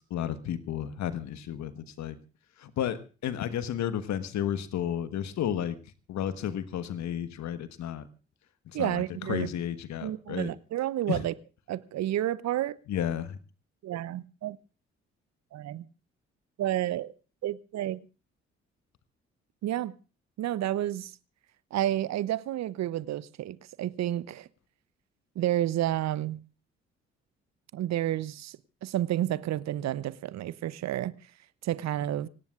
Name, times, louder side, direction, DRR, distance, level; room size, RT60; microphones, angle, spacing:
voice 1, 0.1-2.2 2.6-5.8 6.1-8.0 8.7-10.5 11.1-11.2 12.9-13.4, left 10 dB, 60° left, 1.4 m, -32 dB
voice 2, 8.7-9.5 10.0-11.3 11.7-12.8 13.8-14.6 15.5-15.8 16.6-17.1 17.4-18.0 19.6-19.9 20.4-21.1 21.7-24.5 25.4-26.4 27.7-31.1 31.6-32.3, right 13 dB, 60° right, 0.8 m, -30 dB
26.5 x 17.5 x 2.5 m
hypercardioid pair, 40°, 31 cm